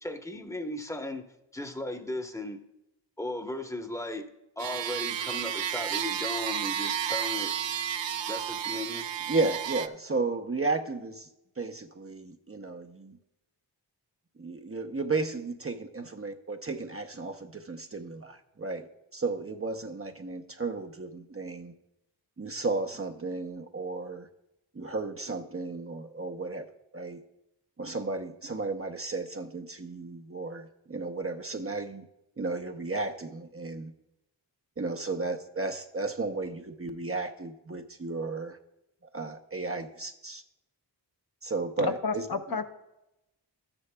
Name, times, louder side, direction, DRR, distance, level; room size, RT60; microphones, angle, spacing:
voice 1, 0.0-1.3 1.5-2.6 3.2-4.3 4.6-7.5 8.3-9.0, left 1 dB, 5° left, 6 dB, 1.0 m, -36 dB
sound 1, 4.6-9.9, right 9 dB, 85° right, 0.6 m, -32 dB
voice 2, 9.3-11.3 11.6-13.2 14.4-18.9 19.1-21.7 22.4-24.3 24.7-27.2 27.8-32.1 32.4-33.9 34.8-38.6 39.1-40.4 41.4-42.6, right 3 dB, 30° right, 5 dB, 0.7 m, -34 dB
voice 3, 41.8-42.6, left 5 dB, 55° left, 6 dB, 0.9 m, -31 dB
13.0 x 9.8 x 2.3 m, 0.89 s
cardioid pair, 55°, 43 cm